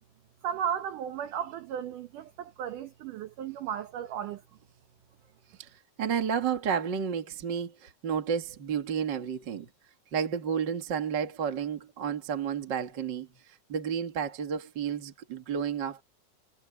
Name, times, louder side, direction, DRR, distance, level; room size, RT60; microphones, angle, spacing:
voice 1, 0.4-4.4, right 9 dB, 70° right, 2.5 m, -35 dB
voice 2, 5.6-9.7 10.1-16.0, right 7 dB, 40° right, 1.7 m, -31 dB
omnidirectional pair, 4.1 m